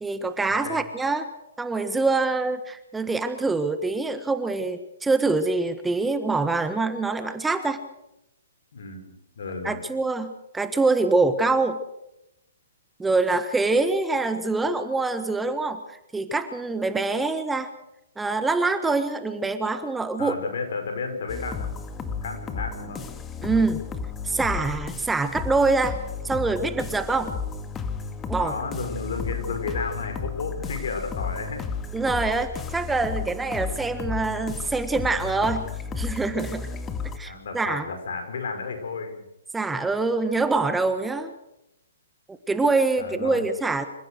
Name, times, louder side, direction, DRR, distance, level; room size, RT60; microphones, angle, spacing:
voice 1, 0.0-1.3 1.6-7.8 9.6-11.8 13.0-17.7 18.2-20.4 23.4-23.9 24.2-26.0 26.2-27.3 28.3-28.5 31.9-35.7 36.0-36.7 37.1-37.8 39.5-41.3 42.3-43.9, right 3 dB, 10° right, 9 dB, 1.4 m, -25 dB
voice 2, 9.4-9.8 20.2-21.7 22.0-23.1 23.4-23.7 28.4-31.6 37.3-39.2 43.0-43.4, left 4 dB, 65° left, 6 dB, 5.8 m, -32 dB
sound 1, 21.3-37.2, left 5 dB, 15° left, 1.8 m, -33 dB
27.5 x 15.5 x 6.5 m, 0.85 s
hypercardioid pair, 130°, 0 cm